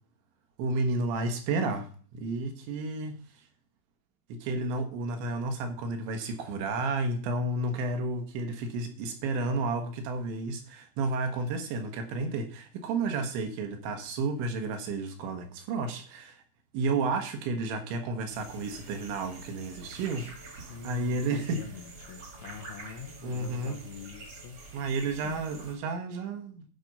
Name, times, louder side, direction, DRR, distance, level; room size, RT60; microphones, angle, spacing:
voice 1, 0.6-1.9 2.1-3.2 4.3-16.4 16.7-21.6 23.2-23.8 24.7-26.7, right 3 dB, 70° right, 6 dB, 3.3 m, -31 dB
sound 1, 18.3-25.8, right 3 dB, 45° right, 1.9 m, -47 dB
voice 2, 20.7-24.6 25.2-25.5, left 7 dB, 80° left, 7 dB, 3.5 m, -45 dB
12.0 x 5.2 x 5.4 m, 0.43 s
omnidirectional pair, 5.8 m